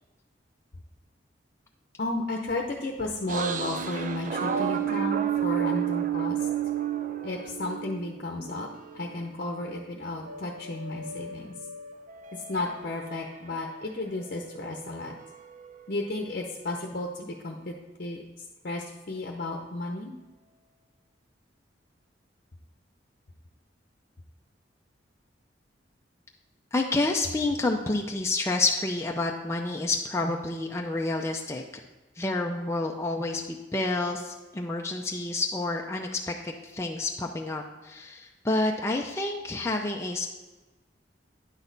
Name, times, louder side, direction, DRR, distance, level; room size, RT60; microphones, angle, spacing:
voice 1, 2.0-6.5 7.2-8.7 8.9-11.5 12.3-15.1 15.9-17.7 18.0-18.2 18.6-20.1, left 2 dB, 55° left, 1 dB, 0.8 m, -33 dB
sound 1, 3.3-9.3 9.7-13.9 14.1-16.7, right 9 dB, 45° right, 0.5 m, -33 dB
voice 2, 26.7-31.6 32.2-40.3, left 2 dB, 15° left, 1 dB, 0.5 m, -29 dB
9.8 x 6.3 x 4.0 m, 1.2 s
head